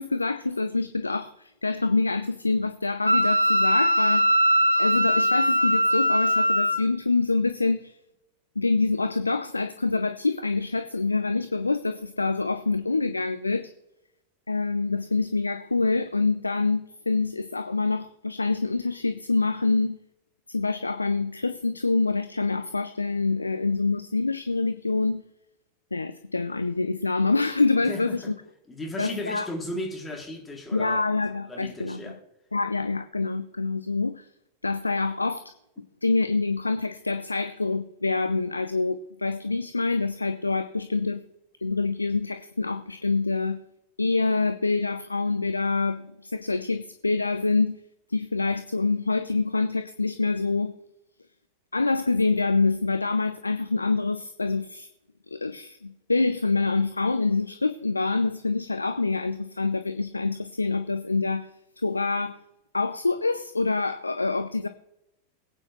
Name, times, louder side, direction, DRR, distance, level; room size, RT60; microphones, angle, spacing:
voice 1, 0.0-4.4 4.8-8.0 8.6-13.7 14.5-20.0 20.5-25.2 25.9-28.3 29.0-29.5 30.7-32.2 32.5-34.3 34.6-35.5 36.0-41.2 41.6-43.6 44.0-47.8 48.1-50.8 51.7-54.9 55.3-61.5 61.8-62.4 62.7-64.7, left 3 dB, 80° left, 0.5 m, -26 dB
Wind instrument woodwind instrument, 3.1-6.8, equal, 90° right, 1.1 m, -21 dB
voice 2, 27.9-28.3 28.7-31.0 31.5-32.2, left 1 dB, 10° left, 2.6 m, -35 dB
21.0 x 8.8 x 3.1 m
figure-of-eight pair, 90°, 0 cm